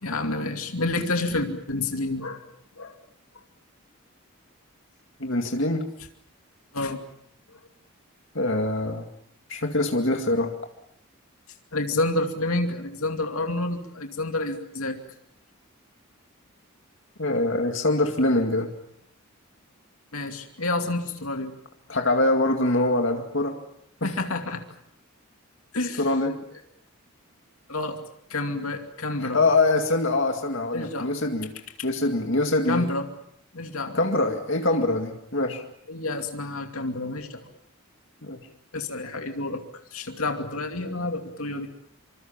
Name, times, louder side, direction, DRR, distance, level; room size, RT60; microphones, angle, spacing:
voice 1, 0.0-2.4 2.8-3.0 6.7-7.0 7.5-7.6 11.7-15.0 20.1-21.5 24.0-24.7 25.7-26.1 27.7-28.0 28.3-29.4 30.7-31.1 31.8-31.9 32.7-33.0 33.5-34.0 35.9-37.4 38.7-39.6 39.9-41.7, left 2 dB, 85° left, 5 dB, 2.6 m, -29 dB
voice 2, 5.2-5.9 8.3-9.1 9.5-10.5 17.2-18.7 21.9-23.6 24.0-24.1 26.0-26.4 29.2-31.5 31.8-32.9 33.9-35.6 38.2-38.4, left 2 dB, 60° left, 4 dB, 2.2 m, -24 dB
26.0 x 26.0 x 7.3 m, 0.71 s
head